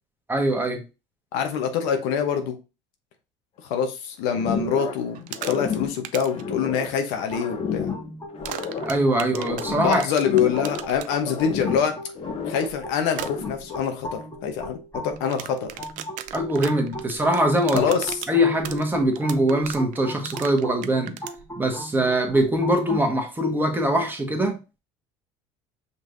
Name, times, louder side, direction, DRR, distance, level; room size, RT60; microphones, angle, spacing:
voice 1, 0.3-0.8 8.8-10.0 16.3-17.8 18.3-21.1 21.6-24.6, right 1 dB, 15° right, 1.2 m, -22 dB
voice 2, 1.3-2.5 3.6-7.9 9.7-11.9 12.5-15.7 17.7-18.2, left 7 dB, 75° left, 0.9 m, -25 dB
sound 1, 4.4-5.1 5.3-7.0 7.3-9.0 9.3-10.9 11.2-12.8 13.1-13.7, left 6 dB, 40° left, 0.9 m, -31 dB
sound 2, 5.1-5.8 6.0-6.4 8.4-11.1 13.1-13.3 15.2-21.4, right 12 dB, 60° right, 0.4 m, -35 dB
sound 3, 7.3-23.1, equal, 20° left, 1.3 m, -38 dB
5.3 x 3.2 x 2.6 m
supercardioid pair, 85°, 15 cm